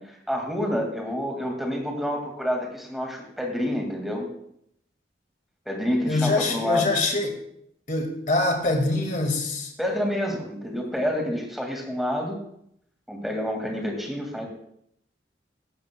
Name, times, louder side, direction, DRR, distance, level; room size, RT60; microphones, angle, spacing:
voice 1, 0.0-4.3 5.7-6.9 9.8-12.4 13.1-14.5, left 1 dB, ahead, 1 dB, 2.0 m, -28 dB
voice 2, 6.1-7.4 7.9-9.7, left 2 dB, 45° left, 3 dB, 2.0 m, -24 dB
16.5 x 12.0 x 2.2 m, 0.72 s
head